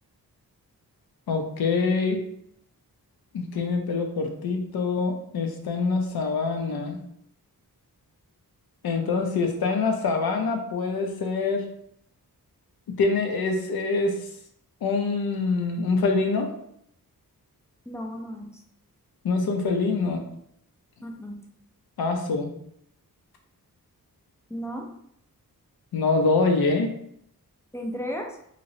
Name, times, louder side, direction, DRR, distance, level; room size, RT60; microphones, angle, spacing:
voice 1, 1.3-2.2 3.3-7.0 8.8-11.7 13.0-14.2 14.8-16.5 19.2-20.2 22.0-22.5 25.9-26.9, left 4 dB, 80° left, 4 dB, 0.6 m, -25 dB
voice 2, 17.9-18.6 21.0-21.4 24.5-24.9 27.7-28.4, equal, 10° left, 1 dB, 0.3 m, -34 dB
2.9 x 2.9 x 2.7 m, 0.70 s
wide cardioid pair, 175°, 37 cm